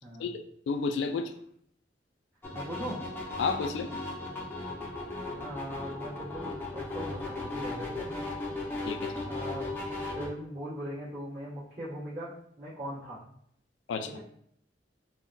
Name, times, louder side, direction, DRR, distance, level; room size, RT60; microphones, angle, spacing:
voice 1, 0.2-1.3 3.4-4.0 8.9-9.2 13.9-14.1, left 4 dB, 85° left, 8 dB, 0.3 m, -31 dB
sound 1, 2.4-10.3, left 2 dB, 10° left, 0.5 m, -37 dB
voice 2, 2.5-3.0 5.4-8.1 9.2-9.7 10.1-12.3 12.6-13.2 14.0-14.2, equal, 50° right, -13 dB, 1.4 m, -40 dB
3.6 x 2.2 x 2.5 m, 0.69 s
head